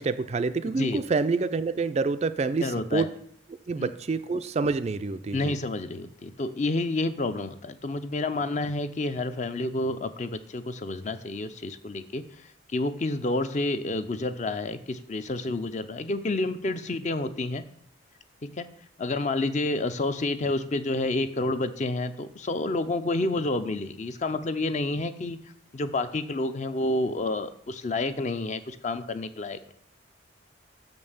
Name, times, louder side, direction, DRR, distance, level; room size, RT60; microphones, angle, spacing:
voice 1, 0.0-3.1 3.7-5.5, right 4 dB, 35° right, 12 dB, 0.3 m, -27 dB
voice 2, 2.6-3.1 3.8-3.9 5.3-17.6 18.4-18.7 19.0-25.4 25.7-29.7, left 2 dB, 35° left, 11 dB, 0.5 m, -29 dB
6.5 x 5.3 x 7.0 m, 0.68 s
head